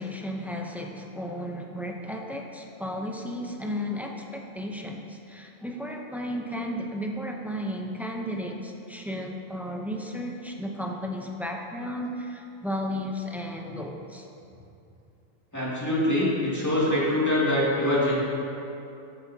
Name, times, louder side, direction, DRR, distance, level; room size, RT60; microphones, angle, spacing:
voice 1, 0.0-14.3, equal, ahead, 1 dB, 0.4 m, -34 dB
voice 2, 15.5-18.1, left 1 dB, 15° left, -8 dB, 2.2 m, -24 dB
14.0 x 8.2 x 2.8 m, 2.7 s
omnidirectional pair, 1.2 m